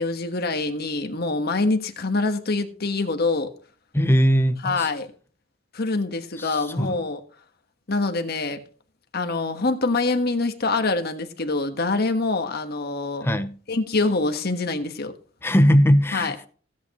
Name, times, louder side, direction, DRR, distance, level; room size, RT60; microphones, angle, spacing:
voice 1, 0.0-3.5 4.6-5.1 5.7-7.2 7.9-8.6 9.1-13.3 13.7-15.1 16.1-16.3, left 3 dB, 55° left, 1.4 m, -25 dB
voice 2, 3.9-4.9 6.4-7.0 13.2-13.6 15.4-16.3, equal, 10° left, 0.8 m, -20 dB
16.0 x 8.6 x 3.1 m
head